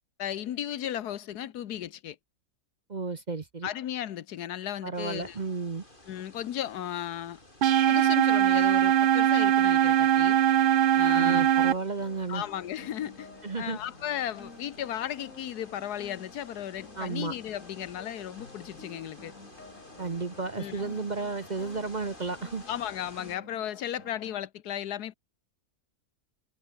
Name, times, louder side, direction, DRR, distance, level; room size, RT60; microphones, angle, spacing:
voice 1, 0.2-2.2 3.6-5.4 6.1-7.4 7.9-10.4 10.9-11.5 12.3-13.3 13.6-19.3 20.6-20.8 22.7-25.1, left 11 dB, 80° left, 1.5 m, -35 dB
voice 2, 2.9-3.7 4.8-5.8 11.1-12.4 13.4-13.8 17.0-17.3 20.0-22.6, right 4 dB, 35° right, 0.9 m, -33 dB
sound 1, 4.9-23.4, left 1 dB, 30° left, 7.0 m, -53 dB
sound 2, 7.6-11.7, right 10 dB, 85° right, 0.4 m, -21 dB
sound 3, 11.6-24.4, left 3 dB, 55° left, 3.9 m, -51 dB
omnidirectional pair, 1.6 m